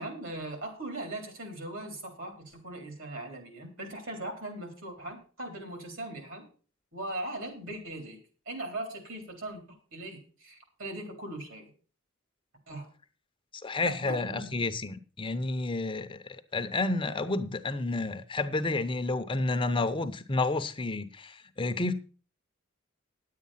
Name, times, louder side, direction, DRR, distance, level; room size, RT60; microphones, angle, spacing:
voice 1, 0.0-6.5 6.9-8.2 8.5-11.7 12.7-12.9 13.8-14.6, right 1 dB, 70° right, 3.6 m, -39 dB
voice 2, 13.6-21.9, left 2 dB, 25° left, 0.7 m, -30 dB
10.0 x 8.5 x 5.6 m
head